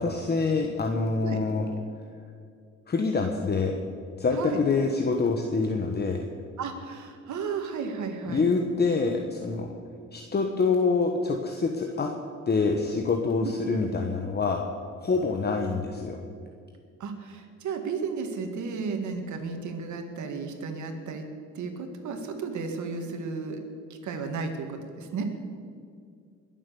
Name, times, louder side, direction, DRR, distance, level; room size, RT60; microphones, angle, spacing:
voice 1, 0.0-1.7 2.9-3.8 4.2-6.2 8.3-9.7 10.1-12.1 12.5-14.6 15.0-16.2, left 4 dB, 35° left, 3 dB, 1.2 m, -26 dB
voice 2, 6.6-8.5 13.4-13.6 17.0-21.3 21.5-23.6 24.0-25.2, right 5 dB, 70° right, 5 dB, 2.0 m, -33 dB
21.5 x 7.5 x 7.0 m, 2.3 s
cardioid pair, 90°, 30 cm